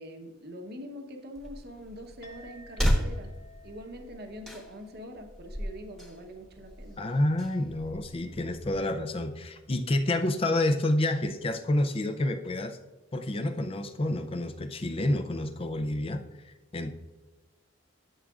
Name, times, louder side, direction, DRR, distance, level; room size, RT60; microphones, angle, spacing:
voice 1, 0.0-3.3 3.6-7.0, equal, 50° right, 4 dB, 1.0 m, -44 dB
sound 1, 1.3-8.8, equal, ahead, 1.1 m, -35 dB
Chink clink, 2.2-10.9, left 2 dB, 60° left, 1.9 m, -58 dB
voice 2, 7.0-12.8 13.1-16.9, left 1 dB, 30° left, 7 dB, 0.4 m, -29 dB
12.0 x 7.2 x 2.4 m, 1.2 s
head